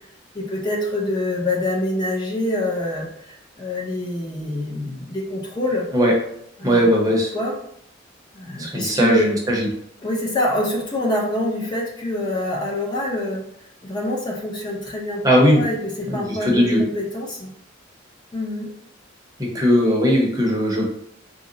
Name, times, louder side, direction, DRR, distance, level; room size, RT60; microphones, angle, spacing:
voice 1, 0.3-5.9 6.6-6.9 7.3-7.6 8.3-9.3 10.0-13.5 13.8-15.2 15.5-17.5 18.3-18.7, left 1 dB, 25° left, -2 dB, 0.6 m, -25 dB
voice 2, 6.6-7.3 8.6-9.7 15.2-15.6 16.1-16.8 19.4-20.9, equal, 20° right, -1 dB, 0.7 m, -18 dB
3.7 x 2.0 x 3.7 m, 0.71 s
head